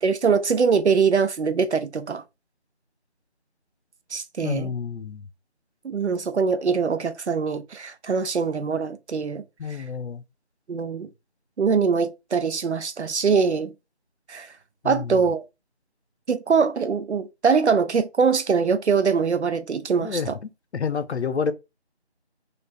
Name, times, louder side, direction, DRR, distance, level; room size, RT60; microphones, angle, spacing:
voice 1, 0.0-2.2 4.1-4.7 5.8-9.4 9.8-9.9 10.7-11.1 11.6-13.7 14.3-14.5 14.8-15.4 16.3-20.4, right 5 dB, 85° right, 0.6 m, -23 dB
voice 2, 4.4-5.3 9.6-10.2 14.8-15.2 20.0-21.5, left 6 dB, 80° left, 0.6 m, -29 dB
2.4 x 2.1 x 3.3 m
figure-of-eight pair, 175°, 33 cm